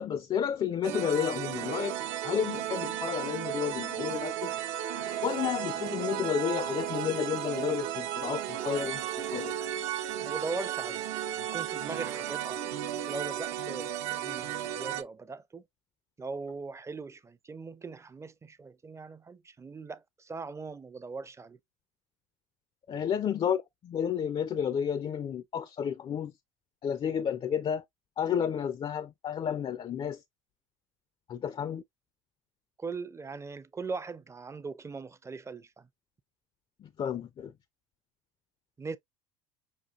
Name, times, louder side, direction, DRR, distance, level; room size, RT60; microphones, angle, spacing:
voice 1, 0.0-2.0 2.2-4.5 5.2-9.0 9.3-9.6 10.5-10.7 22.9-26.3 26.8-27.8 28.2-30.2 31.3-31.8 36.8-37.5, left 8 dB, 30° left, 0.5 m, -31 dB
sound 1, 0.8-15.0, right 11 dB, 70° right, 0.8 m, -34 dB
sound 2, 4.3-9.5, left 6 dB, 80° left, 1.0 m, -53 dB
voice 2, 10.2-11.0 11.4-12.6 13.0-15.6 16.2-21.6 32.8-35.9 38.8-39.0, right 4 dB, 15° right, 0.5 m, -40 dB
6.3 x 2.5 x 2.4 m
hypercardioid pair, 85°, 16 cm